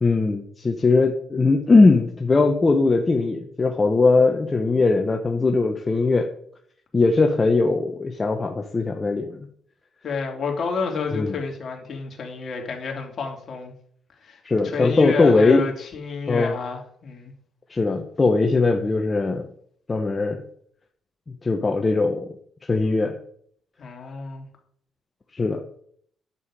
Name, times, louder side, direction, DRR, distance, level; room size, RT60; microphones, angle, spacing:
voice 1, 0.0-6.3 6.9-9.5 11.1-11.4 14.4-15.6 16.3-16.6 17.7-19.5 19.9-20.4 21.4-22.3 22.7-23.2 25.3-25.6, left 3 dB, 25° left, 2 dB, 1.0 m, -20 dB
voice 2, 10.0-13.7 14.2-17.3 23.8-24.5, left 5 dB, 50° left, 1 dB, 2.7 m, -30 dB
9.6 x 7.2 x 4.9 m, 0.63 s
cardioid pair, 90°, 0 cm